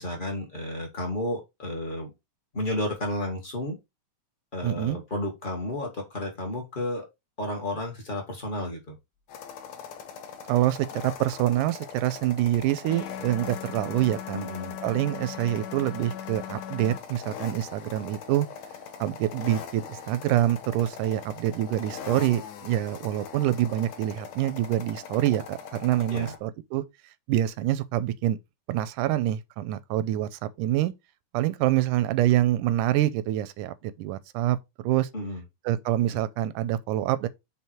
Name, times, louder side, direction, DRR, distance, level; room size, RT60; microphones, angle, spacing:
voice 1, 0.0-2.1 2.5-3.8 4.5-7.0 7.4-8.9 14.3-14.8 26.1-26.3 35.1-35.4, left 1 dB, 25° left, 1.1 m, -32 dB
voice 2, 4.6-5.0 10.5-14.4 14.8-18.5 19.0-26.8 27.3-28.4 28.7-30.9 31.3-34.6 34.8-35.1 35.7-37.3, right 13 dB, 85° right, 2.1 m, -26 dB
sound 1, 9.3-26.4, left 7 dB, 70° left, 2.1 m, -41 dB
sound 2, 12.9-17.0, left 10 dB, 85° left, 2.4 m, -39 dB
6.2 x 3.5 x 4.3 m
omnidirectional pair, 3.6 m